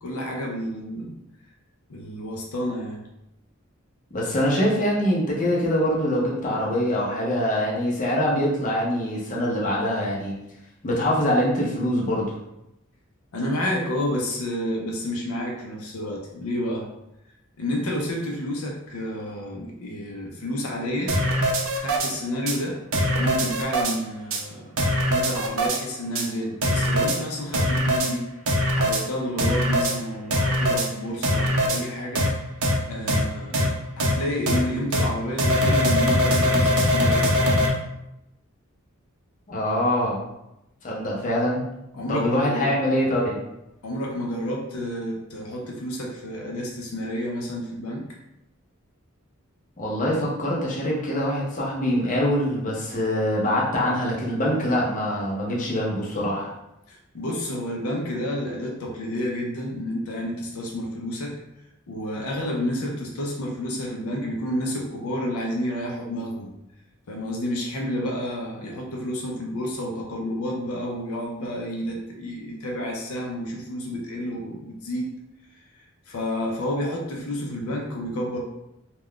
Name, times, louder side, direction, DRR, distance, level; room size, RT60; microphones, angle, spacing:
voice 1, 0.0-1.1 1.9-3.0 13.3-16.9 17.6-21.2 21.8-22.8 23.2-24.7 25.1-28.3 28.7-32.3 32.9-37.7 41.9-42.7 43.8-48.1 56.9-61.3 61.9-66.5 67.1-75.1 75.7-78.4, equal, 80° left, -1 dB, 0.5 m, -30 dB
voice 2, 4.1-10.3 10.8-12.3 39.5-40.2 40.8-41.6 42.1-43.4 49.8-56.5, equal, 40° left, -4 dB, 0.7 m, -24 dB
sound 1, 21.1-22.1 22.5-22.6 22.9-23.9 24.3-24.4 24.8-25.8 26.1-26.3 26.6-27.2 27.5-28.1 28.5-29.0 29.4-29.9 30.3-30.9 31.2-31.8 32.1-32.3 32.6-32.7 33.1-33.2 33.5-33.7 34.0-34.1 34.5-34.6 34.9-35.1 35.4-37.7, equal, 70° right, 0.5 m, -21 dB
2.3 x 2.2 x 3.6 m, 0.88 s
head